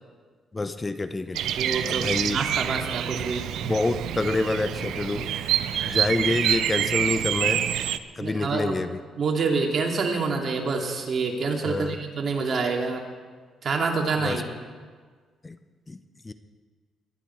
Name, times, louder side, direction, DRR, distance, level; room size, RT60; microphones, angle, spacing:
voice 1, 0.5-1.4 1.8-2.4 3.6-5.3 5.8-7.6 8.2-9.0 11.6-12.0 14.2-14.4 15.4-15.6 15.9-16.0 16.2-16.3, left 2 dB, 25° left, 10 dB, 0.7 m, -27 dB
Bird vocalization bird call bird song, 1.3-8.0, right 10 dB, 80° right, 0.6 m, -27 dB
voice 2, 1.6-3.4 8.2-8.9 9.2-13.0 13.6-14.5, right 4 dB, 50° right, 2 dB, 2.4 m, -27 dB
23.0 x 10.5 x 4.5 m, 1.6 s
cardioid pair, 90°, 0 cm